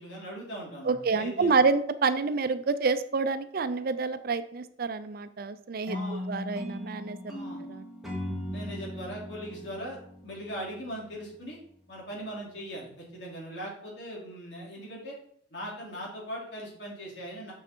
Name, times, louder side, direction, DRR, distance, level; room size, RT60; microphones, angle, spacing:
voice 1, 0.0-1.6 5.9-6.2 7.3-7.6 8.5-10.0 10.2-11.6 11.9-15.1 15.5-17.5, equal, 70° left, -3 dB, 3.3 m, -40 dB
voice 2, 0.8-7.4 7.7-7.8 8.3-8.6, right 4 dB, 55° right, 13 dB, 0.5 m, -28 dB
sound 1, 5.9-11.0, left 1 dB, ahead, 1.7 m, -38 dB
6.8 x 6.4 x 4.5 m, 0.66 s
head